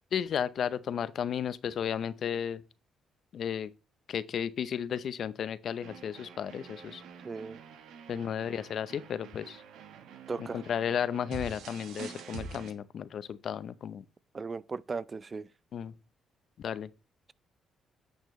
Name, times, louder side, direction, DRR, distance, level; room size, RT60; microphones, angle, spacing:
voice 1, 0.1-2.6 3.3-3.7 4.1-7.0 8.1-9.6 10.4-14.0 15.7-15.9 16.6-16.9, left 8 dB, 65° left, 0.6 m, -33 dB
sound 1, 5.8-12.7, right 5 dB, 75° right, 1.3 m, -46 dB
voice 2, 7.2-7.6 10.3-10.6 14.3-15.5, right 4 dB, 35° right, 0.5 m, -37 dB
9.3 x 6.5 x 3.1 m
supercardioid pair, 60°, 0 cm